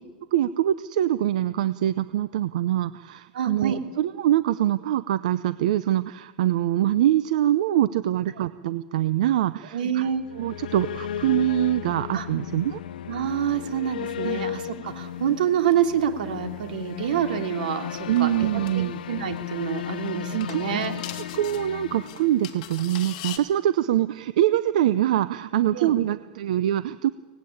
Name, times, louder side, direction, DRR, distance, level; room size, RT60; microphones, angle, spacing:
voice 1, 0.3-10.1 10.4-12.8 14.2-14.4 18.1-19.0 20.3-20.6 21.3-27.1, right 12 dB, 55° right, 14 dB, 0.6 m, -24 dB
voice 2, 3.3-3.8 9.7-10.2 12.1-12.3 13.1-20.9 25.7-26.0, right 8 dB, 75° right, 5 dB, 3.0 m, -27 dB
sound 1, 10.1-22.9, left 10 dB, 85° left, 1.0 m, -35 dB
sound 2, 14.9-23.4, left 11 dB, 40° left, 2.4 m, -44 dB
24.5 x 19.0 x 8.7 m, 1.3 s
supercardioid pair, 175°, 5 cm